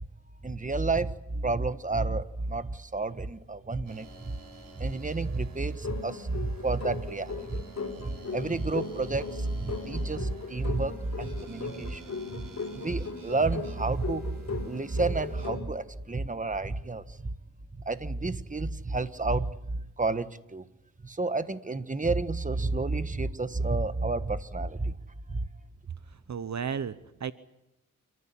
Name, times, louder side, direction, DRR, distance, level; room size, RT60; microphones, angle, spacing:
voice 1, 0.4-4.1 4.8-7.6 8.3-12.0 12.3-12.4 12.8-14.4 14.6-17.0 17.9-20.6 21.0-24.9, right 3 dB, 25° right, 12 dB, 1.4 m, -30 dB
sound 1, 3.9-15.5, right 2 dB, 75° right, 6.7 m, -50 dB
sound 2, 5.8-15.8, left 4 dB, 50° left, 4.3 m, -38 dB
voice 2, 25.9-27.3, right 7 dB, 55° right, 13 dB, 0.9 m, -35 dB
29.0 x 14.0 x 10.0 m, 0.94 s
cardioid pair, 65°, 33 cm